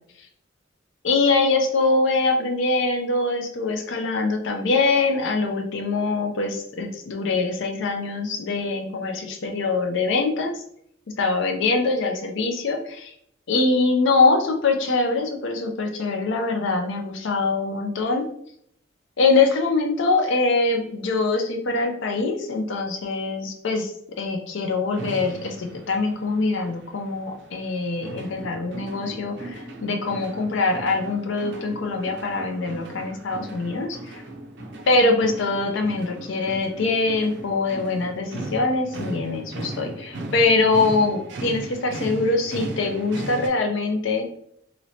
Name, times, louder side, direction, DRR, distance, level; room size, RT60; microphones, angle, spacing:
voice 1, 1.0-10.6 11.2-13.1 13.5-18.2 19.2-23.9 24.2-34.2 34.9-44.3, left 3 dB, 60° left, 3 dB, 0.4 m, -23 dB
sound 1, 24.9-43.5, right 2 dB, 55° right, 0.5 m, -37 dB
3.0 x 2.9 x 2.7 m, 0.69 s
head